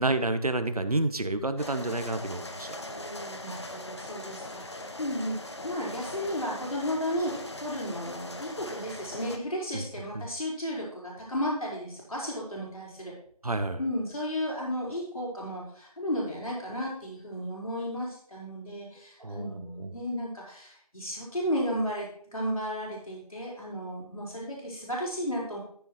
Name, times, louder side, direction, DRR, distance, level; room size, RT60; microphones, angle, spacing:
voice 1, 0.0-2.7 9.7-9.8 13.4-13.8 19.2-19.9, right 2 dB, 75° right, 10 dB, 1.0 m, -29 dB
sound 1, 1.6-9.4, left 1 dB, 45° left, 0.9 m, -40 dB
voice 2, 2.9-13.1 13.8-25.6, equal, 70° left, -5 dB, 4.4 m, -34 dB
13.0 x 6.6 x 3.1 m, 0.63 s
figure-of-eight pair, 170°, 19 cm